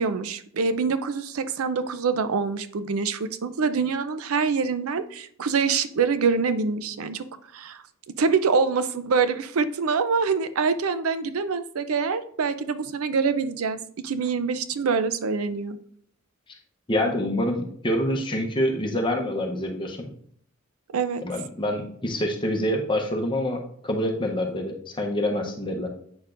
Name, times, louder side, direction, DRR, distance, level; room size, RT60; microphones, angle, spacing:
voice 1, 0.0-7.2 7.5-7.8 8.2-13.8 14.0-15.8 20.9-21.2, right 5 dB, 85° right, 12 dB, 0.5 m, -25 dB
voice 2, 16.9-20.1 21.2-25.9, left 1 dB, 25° left, 1 dB, 0.7 m, -26 dB
8.6 x 6.6 x 2.5 m, 0.62 s
head